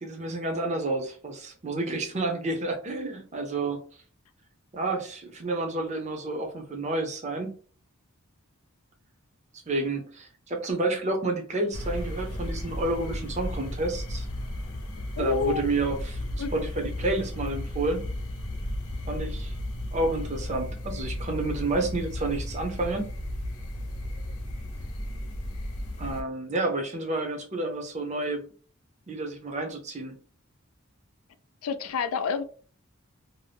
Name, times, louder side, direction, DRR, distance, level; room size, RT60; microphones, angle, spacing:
voice 1, 0.0-3.8 4.7-7.6 9.7-14.3 15.2-18.1 19.1-19.5 19.9-23.1 26.0-28.5 29.1-30.2, right 2 dB, 30° right, 0.5 m, -30 dB
sound 1, 11.7-26.2, left 1 dB, 90° left, 0.8 m, -34 dB
voice 2, 15.2-15.7 16.4-16.5 31.6-32.4, left 7 dB, 70° left, 0.3 m, -28 dB
2.6 x 2.1 x 3.3 m
head